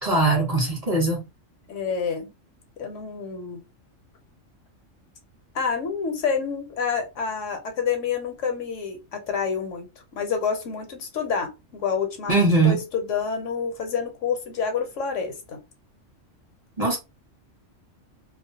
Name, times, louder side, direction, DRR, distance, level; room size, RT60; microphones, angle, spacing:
voice 1, 0.0-1.3 12.3-12.8 16.8-17.0, right 3 dB, 35° right, 0.9 m, -21 dB
voice 2, 1.7-2.3 2.8-3.6 5.5-9.9 10.1-15.6, left 6 dB, 70° left, 1.0 m, -28 dB
2.4 x 2.1 x 2.6 m
omnidirectional pair, 1.4 m